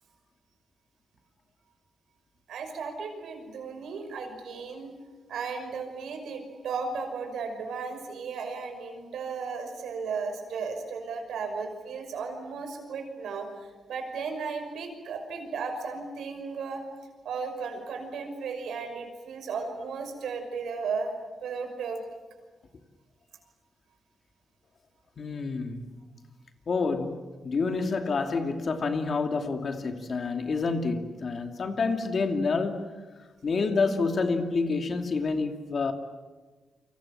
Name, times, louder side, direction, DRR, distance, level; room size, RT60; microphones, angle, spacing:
voice 1, 2.5-5.0 5.3-13.5 13.9-16.8 17.2-21.1 21.4-22.0, right 5 dB, 85° right, 5.9 m, -35 dB
voice 2, 25.2-25.9 26.7-32.9 33.4-35.9, left 4 dB, 45° left, 2.6 m, -28 dB
29.0 x 25.5 x 7.5 m
cardioid pair, 120°, 0 cm